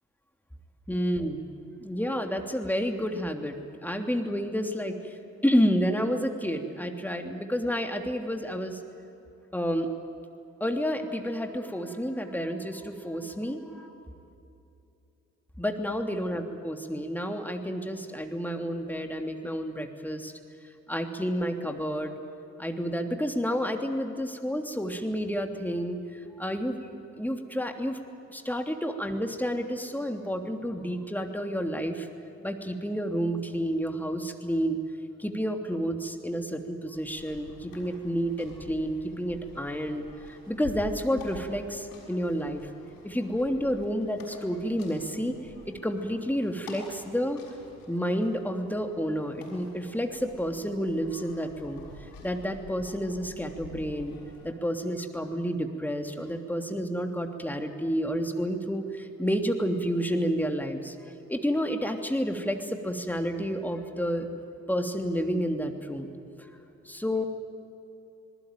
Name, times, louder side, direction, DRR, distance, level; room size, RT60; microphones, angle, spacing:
voice 1, 0.9-1.4 1.8-5.2 5.4-8.8 9.5-9.9 10.6-13.9 15.6-20.3 20.9-22.2 22.6-26.8 27.2-28.0 28.3-32.1 32.4-34.8 35.2-42.7 43.0-45.4 45.6-47.4 47.9-54.2 54.4-64.3 64.7-66.1 66.4-66.5 66.8-67.2, equal, 5° left, 4 dB, 3.1 m, -30 dB
sound 1, 36.9-54.5, left 2 dB, 70° left, 6.4 m, -48 dB
26.0 x 21.0 x 9.2 m, 2.8 s
figure-of-eight pair, 40°, 37 cm